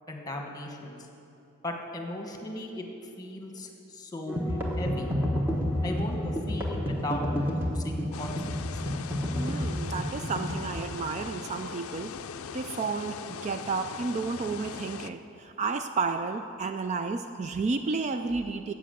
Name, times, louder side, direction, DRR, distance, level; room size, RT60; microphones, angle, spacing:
voice 1, 0.1-1.0 1.6-2.8 3.2-5.1 5.8-8.3, left 1 dB, 20° left, 2 dB, 1.2 m, -37 dB
sound 1, 4.3-10.8, equal, 10° right, 1.2 m, -30 dB
sound 2, 8.1-15.1, left 7 dB, 80° left, 0.4 m, -40 dB
voice 2, 9.4-12.2 12.5-18.7, right 4 dB, 35° right, 8 dB, 0.3 m, -32 dB
11.0 x 7.6 x 7.8 m, 2.7 s
head